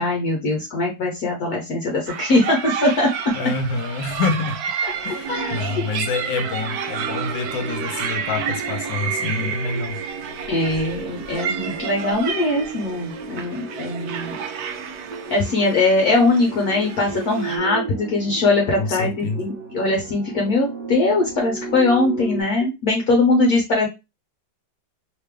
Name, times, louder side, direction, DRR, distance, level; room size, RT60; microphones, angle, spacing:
voice 1, 0.0-3.1 4.8-5.8 10.5-14.4 15.3-23.9, left 2 dB, 60° left, 1.0 m, -21 dB
sound 1, 2.1-17.6, right 7 dB, 80° right, 0.8 m, -31 dB
voice 2, 3.3-4.6 5.0-10.0 18.8-19.4, left 4 dB, 75° left, 1.3 m, -27 dB
sound 2, 4.9-22.4, right 4 dB, 60° right, 1.2 m, -34 dB
3.3 x 3.3 x 3.3 m
omnidirectional pair, 2.2 m